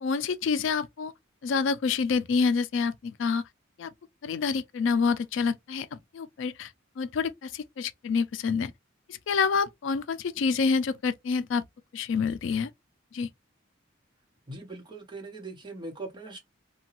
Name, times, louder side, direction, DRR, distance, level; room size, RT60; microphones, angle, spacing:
voice 1, 0.0-1.1 1.4-3.4 3.8-3.9 4.2-6.7 7.0-8.7 9.1-11.6 11.9-12.7 13.1-13.3, left 5 dB, 75° left, 0.3 m, -27 dB
voice 2, 14.5-16.4, right 2 dB, 25° right, 0.8 m, -40 dB
2.8 x 2.2 x 2.9 m
head